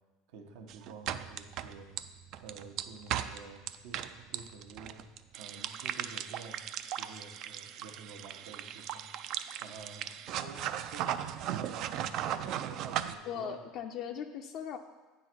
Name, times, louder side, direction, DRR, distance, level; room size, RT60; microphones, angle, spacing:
voice 1, 0.3-1.9 2.4-9.1 9.6-11.2 11.5-13.6, right 5 dB, 75° right, 4 dB, 1.0 m, -50 dB
sound 1, 0.7-13.1, right 10 dB, 55° right, 0.3 m, -37 dB
voice 2, 13.2-14.8, left 8 dB, 50° left, 4 dB, 0.4 m, -39 dB
9.0 x 3.9 x 6.0 m, 1.2 s
supercardioid pair, 125°, 0 cm